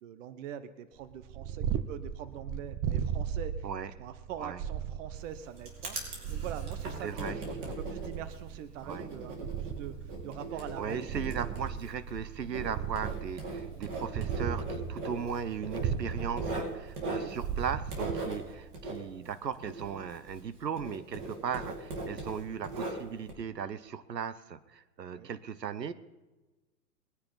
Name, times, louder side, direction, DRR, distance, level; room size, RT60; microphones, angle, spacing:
voice 1, 0.0-3.7 4.0-11.2 17.2-17.4 25.1-25.3, right 9 dB, 50° right, 12 dB, 1.2 m, -44 dB
Purr, 1.1-18.8, right 8 dB, 30° right, 0.8 m, -37 dB
Writing, 5.1-20.5 20.8-23.3, right 2 dB, 65° right, 4.9 m, -39 dB
voice 2, 7.0-7.4 8.8-9.1 10.8-25.9, right 7 dB, 90° right, 13 dB, 1.0 m, -37 dB
22.0 x 9.9 x 4.1 m, 1.1 s
hypercardioid pair, 115°, 48 cm